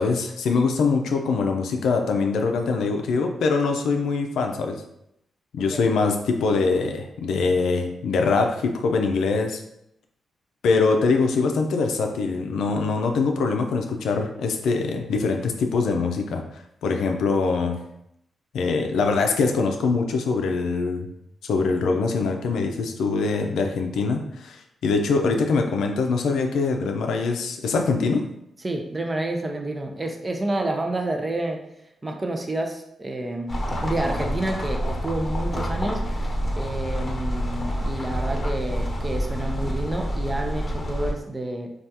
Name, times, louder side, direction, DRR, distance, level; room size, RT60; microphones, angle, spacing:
voice 1, 0.0-4.8 5.5-9.6 10.6-16.4 16.8-17.8 18.5-21.1 21.4-28.2, left 4 dB, 85° left, 4 dB, 0.4 m, -23 dB
voice 2, 28.6-31.6 32.0-41.7, right 1 dB, 25° right, 3 dB, 0.5 m, -29 dB
sound 1, 33.5-41.1, equal, 30° left, 1.0 m, -27 dB
3.3 x 2.3 x 2.8 m, 0.77 s
cardioid pair, 80°, 0 cm